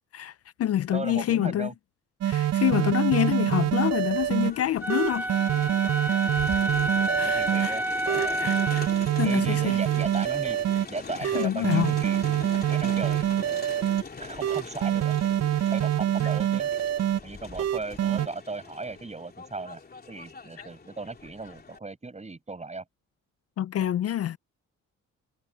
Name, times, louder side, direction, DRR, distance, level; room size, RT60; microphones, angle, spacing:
voice 1, 0.1-1.7 2.2-5.3 7.2-7.8 8.1-8.9 9.2-9.8 11.2-11.9 23.6-24.4, left 11 dB, 50° left, 0.5 m, -27 dB
voice 2, 0.9-1.7 6.3-6.4 7.1-8.4 9.2-10.6 10.9-13.7 14.2-15.2 15.7-16.7 17.2-19.8 20.1-22.8, right 3 dB, 20° right, 7.4 m, -37 dB
sound 1, 2.2-4.5 4.9-7.7 8.1-10.8 11.2-14.0 14.4-17.2 17.6-18.3, right 11 dB, 60° right, 0.7 m, -25 dB
Crowd, 3.5-21.8, left 4 dB, 30° left, 3.3 m, -43 dB
Wind instrument woodwind instrument, 4.8-9.0, right 1 dB, 5° right, 4.3 m, -29 dB
cardioid pair, 90°, 30 cm